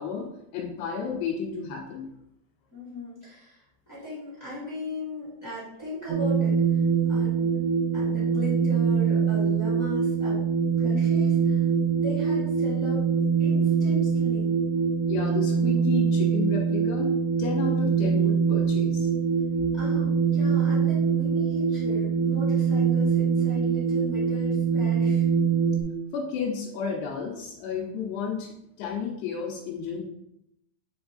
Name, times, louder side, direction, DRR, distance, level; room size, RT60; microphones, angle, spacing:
voice 1, 0.0-2.1 15.1-17.1 17.4-19.1 26.1-30.0, left 6 dB, 80° left, 0 dB, 2.7 m, -32 dB
voice 2, 2.7-3.6 3.9-7.6 7.9-10.4 10.8-11.6 11.9-13.1 13.4-14.5 19.7-25.2, left 2 dB, 15° left, -9 dB, 0.6 m, -37 dB
sound 1, 6.1-25.8, right 6 dB, 80° right, 2.9 m, -24 dB
7.9 x 3.5 x 3.8 m, 0.81 s
omnidirectional pair, 5.2 m